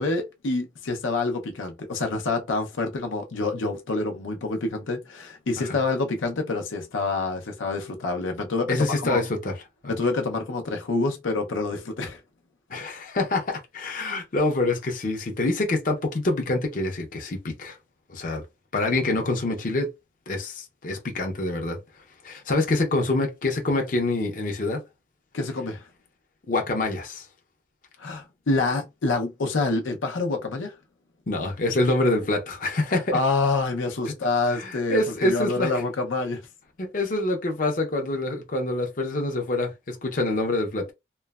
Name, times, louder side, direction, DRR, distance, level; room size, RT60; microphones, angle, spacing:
voice 1, 0.0-9.2 9.9-12.2 25.3-25.8 28.0-30.7 33.1-36.4, left 3 dB, 90° left, 0.6 m, -27 dB
voice 2, 8.7-9.6 9.8-9.9 12.7-17.8 18.1-18.4 18.7-19.9 20.3-21.8 22.2-24.8 26.5-27.3 31.3-33.2 34.5-35.7 36.8-40.9, left 2 dB, 45° left, 0.5 m, -26 dB
3.0 x 2.1 x 2.3 m
head